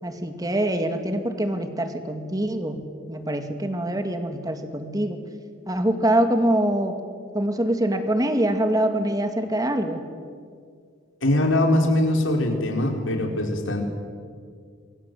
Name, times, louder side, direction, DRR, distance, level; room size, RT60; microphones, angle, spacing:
voice 1, 0.0-2.8 3.1-5.2 5.7-7.0 7.3-10.1, right 1 dB, 20° right, 6 dB, 2.2 m, -24 dB
voice 2, 11.2-13.8, left 1 dB, 80° left, 2 dB, 4.4 m, -22 dB
28.0 x 22.5 x 7.7 m, 2.1 s
head